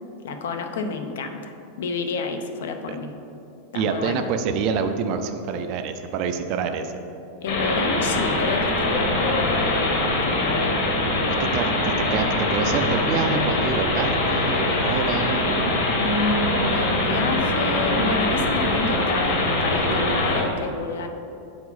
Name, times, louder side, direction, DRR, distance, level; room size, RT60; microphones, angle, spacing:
voice 1, 0.2-3.1 3.7-4.3 7.4-10.8 16.0-21.1, left 3 dB, 90° left, 6 dB, 0.6 m, -29 dB
voice 2, 3.7-6.9 11.5-15.5, right 5 dB, 35° right, 7 dB, 0.4 m, -26 dB
sound 1, 7.5-20.4, left 2 dB, 60° left, 1.4 m, -23 dB
7.9 x 4.8 x 4.0 m, 2.7 s
supercardioid pair, 175°, 0 cm